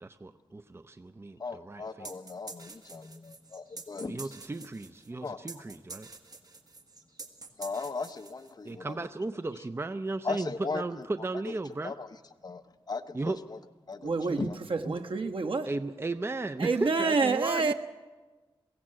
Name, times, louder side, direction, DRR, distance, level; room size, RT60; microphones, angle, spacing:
voice 1, 0.0-2.1 4.0-6.1 8.6-12.0 13.1-13.4 14.3-14.4 14.9-15.0 15.7-17.7, right 2 dB, 25° right, 10 dB, 0.6 m, -35 dB
voice 2, 1.4-4.3 5.2-5.4 7.6-9.0 10.2-11.1 11.8-12.1 12.4-12.6 12.9-13.6 13.9-14.6, left 4 dB, 45° left, 9 dB, 0.9 m, -37 dB
sound 1, 2.0-8.7, right 3 dB, 45° right, 1.8 m, -47 dB
voice 3, 14.0-15.7 16.6-17.7, right 4 dB, 70° right, 5 dB, 1.2 m, -28 dB
22.5 x 16.0 x 7.7 m, 1.3 s
wide cardioid pair, 95°, 9 cm